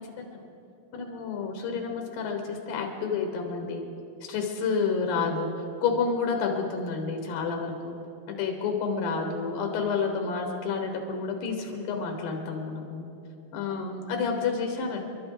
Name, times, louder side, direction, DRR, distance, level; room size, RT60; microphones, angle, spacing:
voice 1, 0.2-0.5 0.9-3.9 4.2-5.5 5.8-7.9 8.3-13.1 13.5-15.0, left 5 dB, 85° left, 3 dB, 3.5 m, -29 dB
29.5 x 12.0 x 3.9 m, 2.9 s
omnidirectional pair, 4.7 m